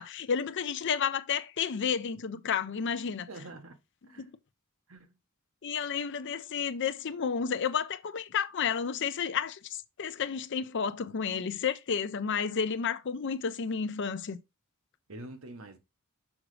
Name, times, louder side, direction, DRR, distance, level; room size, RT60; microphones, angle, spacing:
voice 1, 0.0-3.3 4.2-4.3 5.6-14.4, left 6 dB, 55° left, 0.5 m, -31 dB
voice 2, 3.3-3.8 4.1-4.3 4.9-5.2 15.1-15.8, right 2 dB, 70° right, 1.1 m, -45 dB
6.3 x 5.0 x 3.2 m
head